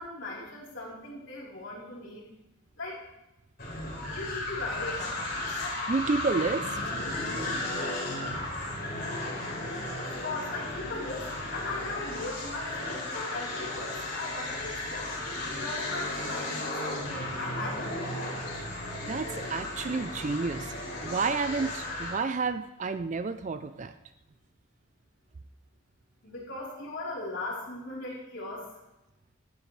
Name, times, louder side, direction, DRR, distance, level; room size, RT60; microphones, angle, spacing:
voice 1, 0.0-2.2 2.8-3.0 4.1-5.5 10.0-15.1 15.6-17.9 26.2-28.7, left 2 dB, 65° left, -5 dB, 3.8 m, -38 dB
sound 1, 3.6-22.2, left 2 dB, 45° left, 4.3 m, -35 dB
voice 2, 5.9-6.8 9.9-10.0 19.1-20.7 21.0-23.9, right 4 dB, 35° right, 10 dB, 0.4 m, -30 dB
15.5 x 12.5 x 3.2 m, 0.94 s
head